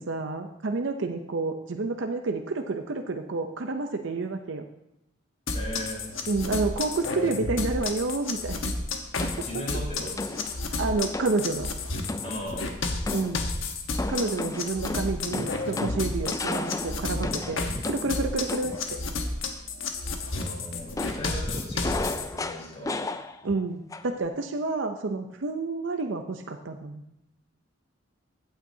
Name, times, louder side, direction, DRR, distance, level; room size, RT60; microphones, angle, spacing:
voice 1, 0.0-4.7 6.3-8.6 9.2-9.3 10.8-11.7 13.1-13.4 14.1-18.7 23.4-27.0, right 3 dB, 70° right, 5 dB, 0.6 m, -29 dB
sound 1, 5.5-22.2, left 3 dB, 80° left, 1.2 m, -31 dB
voice 2, 5.5-6.1 9.4-10.4 12.2-12.8 17.4-17.9 20.3-23.0, equal, 30° left, -4 dB, 4.0 m, -38 dB
sound 2, 9.2-9.6 10.2-10.6 11.1-11.4 12.1-12.6 13.0-13.4 13.9-18.9 21.0-23.6 23.9-24.3, left 2 dB, 15° left, 0.3 m, -34 dB
15.0 x 8.9 x 2.7 m, 0.83 s
head